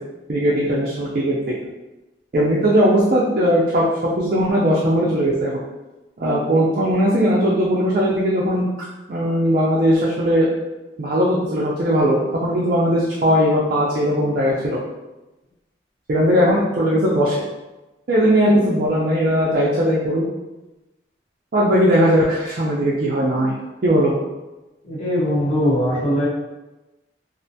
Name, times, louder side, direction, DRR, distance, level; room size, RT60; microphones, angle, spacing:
voice 1, 0.3-1.5 2.3-3.8 4.2-5.6 6.2-8.6 9.1-10.5 11.0-14.8 16.1-17.4 18.1-20.3 21.5-23.5 23.8-24.1, equal, 50° right, -5 dB, 0.4 m, -18 dB
voice 2, 24.8-26.3, equal, 40° left, -8 dB, 0.9 m, -20 dB
2.4 x 2.2 x 2.6 m, 1.0 s
head